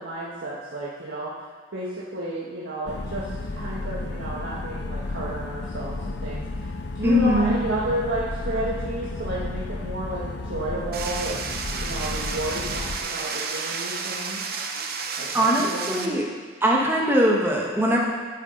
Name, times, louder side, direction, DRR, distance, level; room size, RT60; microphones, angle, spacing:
voice 1, 0.0-1.3 1.7-14.5 15.2-16.2, right 1 dB, 80° right, -7 dB, 1.5 m, -32 dB
sound 1, 2.9-13.0, left 2 dB, 65° left, 0.6 m, -32 dB
voice 2, 7.0-7.6 15.3-16.2 16.6-18.0, equal, 10° right, -2 dB, 1.2 m, -21 dB
sound 2, 10.9-16.1, right 5 dB, 50° right, 0.8 m, -31 dB
13.0 x 7.5 x 3.9 m, 1.5 s
head